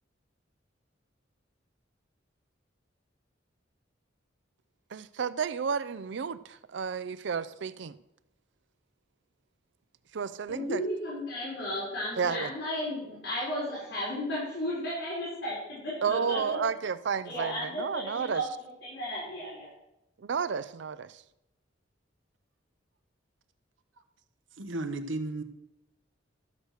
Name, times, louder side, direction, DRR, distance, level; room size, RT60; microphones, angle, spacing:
voice 1, 4.9-8.0 10.1-10.8 12.2-12.5 16.0-18.4 20.2-21.2, right 6 dB, 65° right, 0.5 m, -32 dB
voice 2, 10.5-16.6 17.2-18.4 18.8-19.7, equal, 65° left, 5.6 m, -34 dB
voice 3, 24.6-25.4, right 2 dB, 90° right, 1.1 m, -33 dB
14.0 x 6.5 x 6.4 m
head